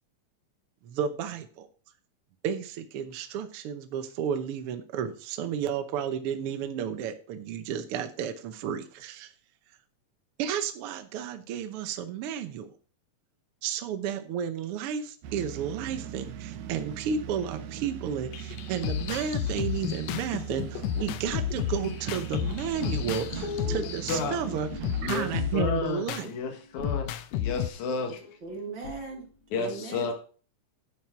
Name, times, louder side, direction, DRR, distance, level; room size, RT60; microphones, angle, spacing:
voice 1, 0.8-1.7 2.4-9.3 10.4-12.7 13.6-24.7 25.0-26.3, right 8 dB, 70° right, 8 dB, 1.3 m, -32 dB
sound 1, 15.2-25.6, right 9 dB, 90° right, 2.4 m, -39 dB
sound 2, 18.3-24.3 24.8-26.3 26.8-27.7, left 11 dB, 85° left, 1.5 m, -32 dB
sound 3, 21.2-22.8 23.2-23.9 24.1-25.1 25.4-27.2 27.4-29.5, left 3 dB, 40° left, 2.7 m, -47 dB
voice 2, 23.4-24.6 25.0-28.4 29.5-30.1, left 5 dB, 70° left, 5 dB, 2.8 m, -32 dB
voice 3, 28.4-29.3 29.5-30.1, right 3 dB, 40° right, 0 dB, 2.4 m, -38 dB
10.5 x 6.5 x 4.4 m, 0.41 s
omnidirectional pair, 3.7 m